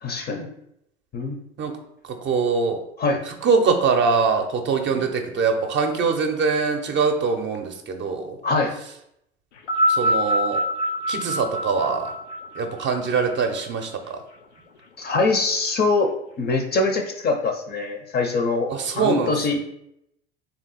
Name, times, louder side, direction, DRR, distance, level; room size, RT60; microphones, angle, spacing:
voice 1, 0.0-0.5 1.1-1.4 3.0-3.2 8.4-8.7 15.0-16.1 16.4-18.7 18.9-19.6, left 3 dB, 30° left, 4 dB, 0.6 m, -23 dB
voice 2, 2.1-2.8 3.4-8.4 9.9-10.6 11.1-12.1 12.6-14.2 18.7-19.3, right 5 dB, 35° right, 4 dB, 0.6 m, -23 dB
sound 1, 9.6-14.1 15.0-15.1, equal, 85° left, 0.5 m, -25 dB
3.5 x 2.8 x 4.0 m, 0.78 s
hypercardioid pair, 75°, 34 cm